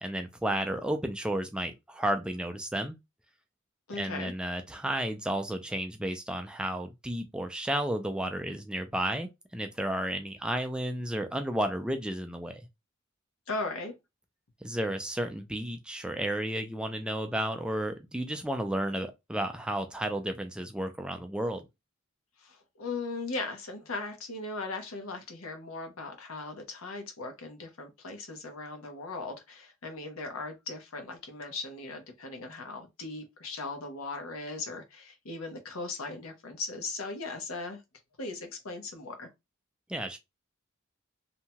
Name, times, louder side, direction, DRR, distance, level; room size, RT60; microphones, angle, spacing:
voice 1, 0.0-3.0 3.9-12.7 14.6-21.6 39.9-40.2, right 1 dB, 5° right, 0.3 m, -32 dB
voice 2, 3.9-4.3 13.5-13.9 22.4-37.8 38.2-39.3, left 3 dB, 85° left, 0.9 m, -38 dB
2.8 x 2.2 x 2.8 m
head